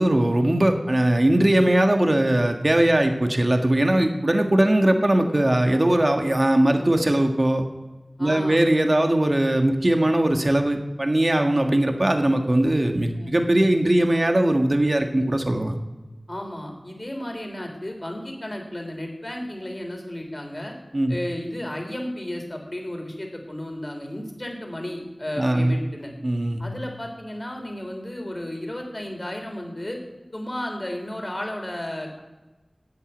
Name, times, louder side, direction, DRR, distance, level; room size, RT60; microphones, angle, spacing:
voice 1, 0.0-7.6 8.2-15.8 20.9-21.1 25.4-25.7 26.2-26.6, right 1 dB, 45° right, 4 dB, 1.6 m, -20 dB
voice 2, 8.2-8.7 13.2-13.3 16.3-20.7 21.1-26.1 26.6-30.0 30.3-32.2, left 1 dB, 35° left, 2 dB, 3.7 m, -33 dB
11.5 x 8.3 x 8.9 m, 1.1 s
wide cardioid pair, 50°, 0 cm